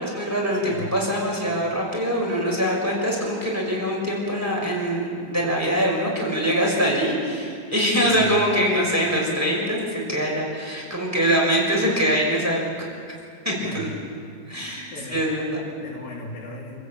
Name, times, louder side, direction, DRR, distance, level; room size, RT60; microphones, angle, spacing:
voice 1, 0.0-12.6 13.4-13.9 14.4-15.6, equal, 5° right, -2 dB, 5.7 m, -23 dB
sound 1, 2.8-5.7, right 1 dB, 25° right, 7.6 m, -44 dB
voice 2, 8.1-8.4 13.5-14.1 14.9-15.2 15.8-16.8, left 2 dB, 65° left, -5 dB, 4.2 m, -37 dB
27.5 x 15.0 x 8.8 m, 2.3 s
omnidirectional pair, 4.3 m